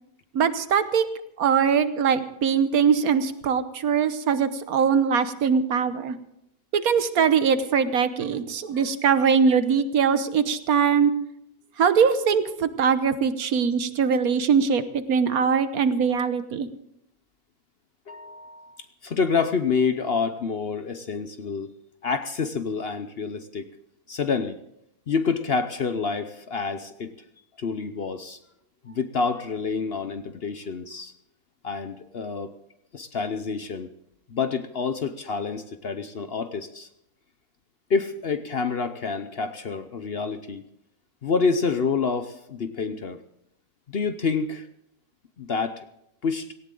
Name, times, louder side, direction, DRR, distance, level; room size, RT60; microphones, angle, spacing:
voice 1, 0.3-1.0 1.4-6.2 6.7-11.1 11.8-16.7, right 6 dB, 65° right, 12 dB, 1.4 m, -22 dB
voice 2, 18.1-21.7 22.0-23.7 24.1-24.6 25.1-27.1 27.6-28.4 28.8-31.1 31.6-32.5 32.9-33.9 34.3-36.9 37.9-40.6 41.2-43.2 43.9-44.7 45.4-45.8 46.2-46.5, left 5 dB, 50° left, 10 dB, 0.8 m, -28 dB
18.0 x 17.0 x 3.8 m, 0.79 s
omnidirectional pair, 1.7 m